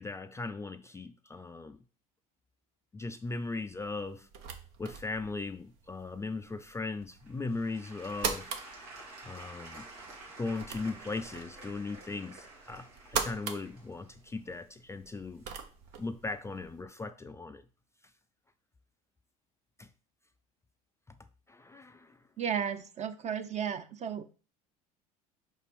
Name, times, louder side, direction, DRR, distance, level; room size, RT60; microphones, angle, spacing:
voice 1, 0.0-1.8 2.9-4.3 4.8-8.5 9.2-9.9 10.4-15.4 16.0-17.6 19.8-19.9 21.5-22.2, left 3 dB, 15° left, 0.3 m, -38 dB
sound 1, 3.2-16.8, right 6 dB, 70° right, 1.1 m, -43 dB
Applause / Crowd, 7.0-15.9 16.5-16.6, right 2 dB, 90° right, 2.2 m, -50 dB
voice 2, 22.4-24.2, right 8 dB, 40° right, 0.8 m, -34 dB
5.1 x 4.2 x 5.2 m
supercardioid pair, 95°, 19 cm